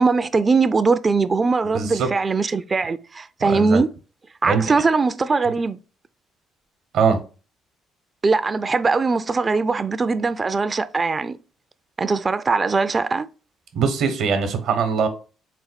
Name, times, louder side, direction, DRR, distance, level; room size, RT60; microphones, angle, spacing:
voice 1, 0.0-3.9 4.4-5.8 8.2-11.4 12.0-13.3, right 4 dB, 30° right, 0.3 m, -21 dB
voice 2, 1.7-2.1 3.4-3.8 4.5-4.6 6.9-7.2 13.7-15.1, right 5 dB, 75° right, 0.9 m, -21 dB
4.4 x 2.2 x 4.0 m
supercardioid pair, 70°, 0 cm